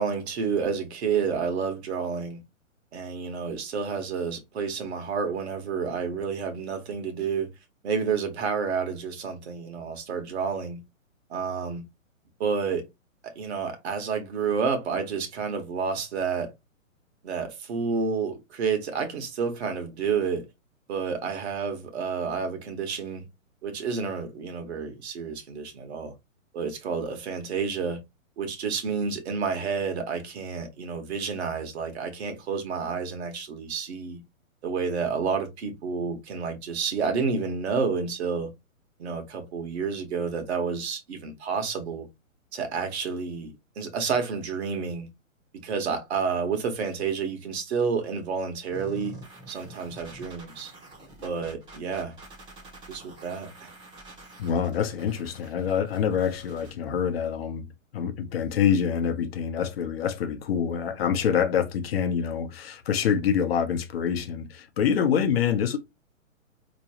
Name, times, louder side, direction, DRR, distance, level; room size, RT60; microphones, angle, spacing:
voice 1, 0.0-2.4 2.9-7.5 7.8-10.8 11.3-11.8 12.4-12.9 13.2-16.5 17.2-20.5 20.9-23.2 23.6-26.1 26.5-28.0 28.4-34.2 34.6-38.5 39.0-42.1 42.5-45.1 45.6-49.1 49.5-50.7 51.2-52.1 52.9-53.7, right 5 dB, 50° right, 1.3 m, -30 dB
sound 1, 48.7-56.7, right 2 dB, 10° right, 0.9 m, -47 dB
voice 2, 54.4-57.7 57.9-65.8, left 8 dB, 45° left, 0.8 m, -26 dB
4.4 x 3.0 x 2.9 m
hypercardioid pair, 130°, 41 cm